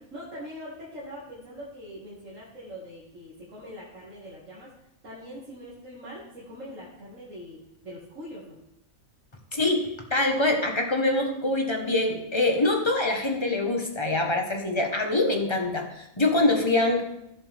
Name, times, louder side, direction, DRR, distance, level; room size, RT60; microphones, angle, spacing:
voice 1, 0.0-8.6, equal, 65° right, -7 dB, 2.5 m, -42 dB
voice 2, 9.5-17.0, left 2 dB, 20° left, 2 dB, 1.3 m, -24 dB
16.0 x 7.2 x 3.5 m, 0.83 s
omnidirectional pair, 1.4 m